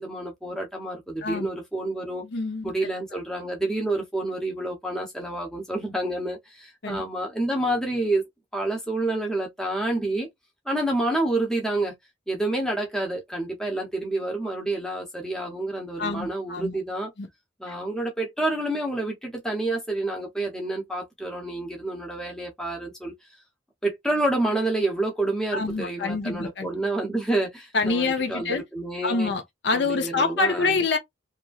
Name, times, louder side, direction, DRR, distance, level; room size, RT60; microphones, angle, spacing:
voice 1, 0.0-2.2 2.6-8.2 8.5-10.3 10.7-11.9 12.3-17.1 17.6-23.1 23.8-29.3 29.7-30.8, right 2 dB, 5° left, 0.8 m, -28 dB
voice 2, 2.2-2.7 6.8-7.0 16.0-16.8 17.2-17.3 17.7-17.8 25.5-26.7 27.7-28.6 29.0-31.0, left 3 dB, 60° left, 0.7 m, -26 dB
3.0 x 2.5 x 2.3 m
head